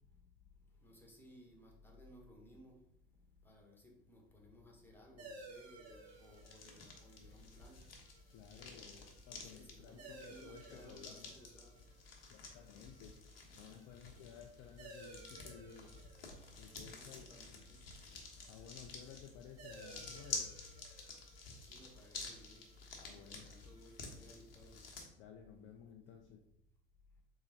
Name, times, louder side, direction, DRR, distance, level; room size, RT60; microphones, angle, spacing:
voice 1, 0.8-2.7 3.4-7.8 8.5-11.7 16.9-17.6 21.7-22.6 23.1-24.8, left 1 dB, 5° left, 0 dB, 1.1 m, -60 dB
sound 1, 5.2-24.3, right 3 dB, 50° right, 1.1 m, -59 dB
sound 2, 5.9-25.0, left 4 dB, 65° left, 1.0 m, -51 dB
voice 2, 8.3-9.0 9.3-11.3 12.3-13.3 13.6-15.9 16.6-17.3 18.5-20.5 23.0-23.5 25.2-26.4, left 8 dB, 40° left, 2 dB, 0.5 m, -55 dB
3.9 x 3.1 x 3.8 m, 0.75 s
figure-of-eight pair, 65°, 31 cm